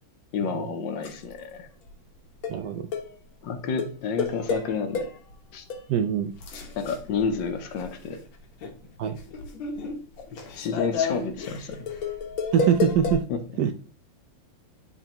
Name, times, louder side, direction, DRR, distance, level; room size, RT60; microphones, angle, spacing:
voice 1, 0.3-1.7 3.4-5.1 5.5-5.6 6.8-8.2 10.2-10.3 10.6-11.9 13.3-13.4, left 5 dB, 70° left, 8 dB, 1.5 m, -30 dB
sound 1, 1.0-1.3 1.9-2.0 2.4-2.6 2.9-3.1 3.8-5.3 5.7-5.8 6.3-8.2 8.5-13.2, left 4 dB, 85° left, 1.9 m, -31 dB
voice 2, 2.5-2.9 5.9-6.3 9.0-9.2 12.5-13.2 13.6-13.7, right 8 dB, 75° right, 9 dB, 1.0 m, -23 dB
9.8 x 4.2 x 3.0 m, 0.40 s
omnidirectional pair, 2.2 m